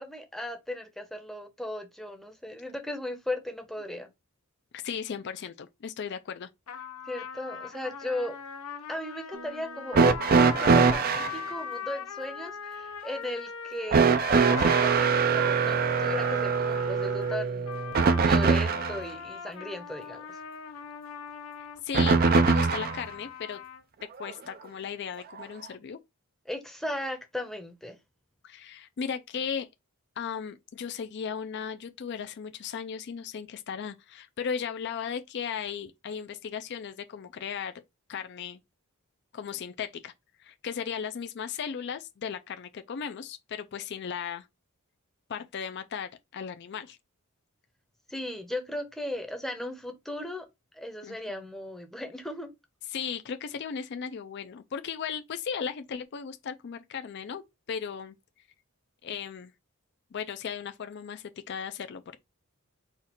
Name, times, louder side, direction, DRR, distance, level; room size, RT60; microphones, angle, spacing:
voice 1, 0.0-4.1 7.1-8.4 8.9-20.4 26.5-28.0 48.1-50.5 50.7-52.5, left 1 dB, ahead, 0.7 m, -37 dB
voice 2, 4.7-6.5 21.6-23.6 24.2-26.0 28.4-29.7 30.2-37.7 38.1-38.6 39.3-40.1 40.4-44.5 45.3-47.0 51.0-51.4 52.9-57.4 57.7-58.2 59.0-59.5 60.1-62.2, left 7 dB, 50° left, 0.4 m, -36 dB
sound 1, 6.7-23.8, left 7 dB, 85° left, 0.7 m, -40 dB
sound 2, 9.3-12.7, right 1 dB, 70° right, 2.2 m, -55 dB
sound 3, 9.9-11.4 13.9-19.0 21.9-23.0 24.2-24.3 25.4-25.5, right 5 dB, 45° right, 0.4 m, -23 dB
4.3 x 2.4 x 4.3 m
head